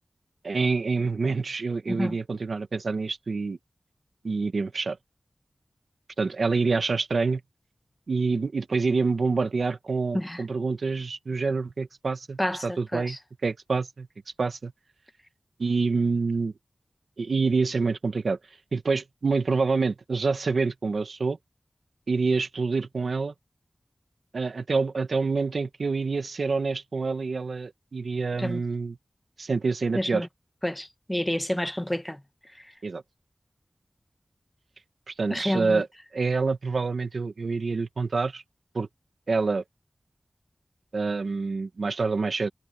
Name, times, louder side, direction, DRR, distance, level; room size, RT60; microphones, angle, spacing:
voice 1, 0.4-3.6 4.2-5.0 6.2-7.4 8.1-13.2 13.4-14.1 14.4-14.7 15.6-16.5 17.2-18.4 18.7-21.4 22.1-23.3 24.3-29.0 29.4-30.3 32.8-33.0 35.1-35.9 36.1-38.4 38.7-38.9 39.3-39.6 40.9-42.5, right 4 dB, 85° right, 1.3 m, -27 dB
voice 2, 12.4-13.2 28.4-28.6 29.9-30.3 30.6-32.2 32.5-32.7 35.3-35.8, left 1 dB, 10° left, 1.4 m, -29 dB
wide cardioid pair, 65°, 0 cm